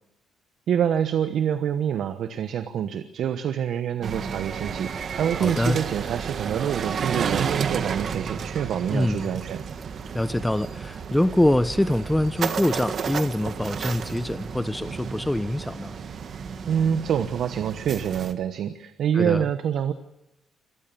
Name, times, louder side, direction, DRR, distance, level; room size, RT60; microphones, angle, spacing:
voice 1, 0.7-9.6 16.7-19.9, right 8 dB, 70° right, 10 dB, 1.0 m, -26 dB
sound 1, 4.0-18.3, right 6 dB, 55° right, 1.7 m, -32 dB
voice 2, 5.3-5.8 8.9-9.3 10.1-15.9 19.1-19.4, left 1 dB, 10° left, 13 dB, 0.8 m, -24 dB
25.0 x 18.5 x 7.0 m, 0.91 s
cardioid pair, 90°, 0 cm